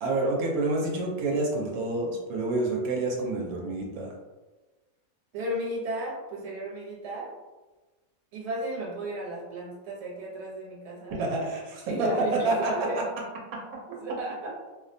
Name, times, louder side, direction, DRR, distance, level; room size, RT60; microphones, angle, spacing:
voice 1, 0.0-4.1 11.2-13.0, right 2 dB, 85° right, -1 dB, 1.0 m, -28 dB
voice 2, 5.3-7.3 8.3-11.5 11.9-13.0 13.9-14.5, right 1 dB, 55° right, -3 dB, 0.9 m, -34 dB
2.5 x 2.1 x 2.5 m, 1.2 s
omnidirectional pair, 1.5 m